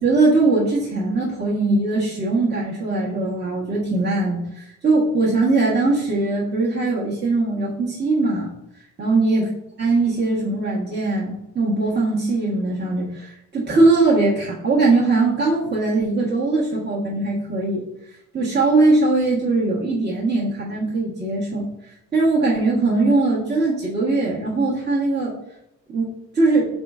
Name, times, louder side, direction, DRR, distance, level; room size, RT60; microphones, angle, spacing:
voice 1, 0.0-8.5 9.0-9.5 9.8-17.8 18.3-21.7 22.1-25.3 25.9-26.1 26.3-26.7, right 3 dB, 35° right, -6 dB, 1.2 m, -20 dB
4.8 x 4.2 x 2.4 m, 0.86 s
cardioid pair, 90°, 30 cm